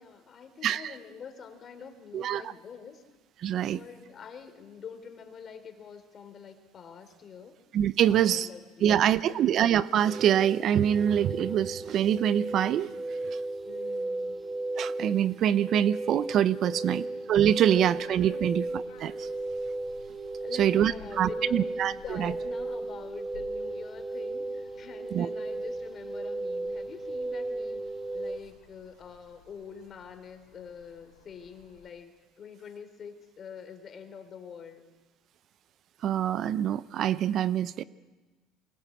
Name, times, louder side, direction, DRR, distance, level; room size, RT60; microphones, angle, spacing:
voice 1, 0.0-3.0 3.6-7.6 8.1-9.6 13.6-14.4 16.7-17.1 18.4-18.6 20.4-21.7 22.0-27.8 28.1-34.8, left 6 dB, 40° left, 8 dB, 3.4 m, -46 dB
voice 2, 3.4-3.8 7.7-8.5 8.8-12.9 13.3-13.4 14.8-17.0 17.3-19.3 20.6-21.9 22.2-22.3 25.1-25.3 36.0-37.8, right 10 dB, 55° right, 16 dB, 0.6 m, -25 dB
sound 1, 10.1-28.4, right 2 dB, 15° right, 1.9 m, -35 dB
sound 2, 17.7-31.9, left 6 dB, 85° left, 5.0 m, -55 dB
23.0 x 19.5 x 8.6 m, 1.2 s
supercardioid pair, 90°, 0 cm